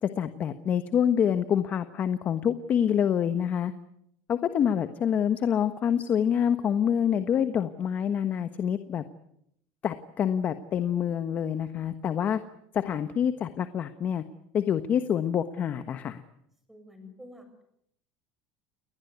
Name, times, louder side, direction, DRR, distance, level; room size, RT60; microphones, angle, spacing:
voice 1, 0.0-3.7 4.3-9.1 9.8-12.4 12.7-14.2 14.5-16.2, left 8 dB, 35° left, 10 dB, 1.2 m, -26 dB
voice 2, 16.7-17.6, left 1 dB, 5° right, 7 dB, 7.3 m, -48 dB
29.5 x 20.5 x 8.2 m, 0.74 s
cardioid pair, 145°, 5 cm